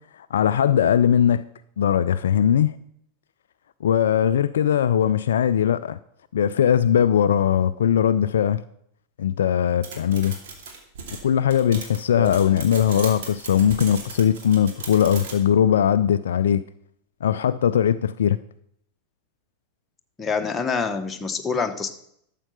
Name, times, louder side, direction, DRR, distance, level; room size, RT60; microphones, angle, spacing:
voice 1, 0.3-1.4 1.8-2.8 3.8-6.0 6.3-8.6 9.2-10.4 11.1-16.6 17.2-18.4, left 9 dB, 65° left, 0.4 m, -20 dB
sound 1, 9.8-15.4, right 4 dB, 55° right, 2.5 m, -37 dB
voice 2, 20.2-21.9, left 5 dB, 15° left, 1.2 m, -26 dB
12.0 x 7.5 x 5.6 m
figure-of-eight pair, 90°, 0 cm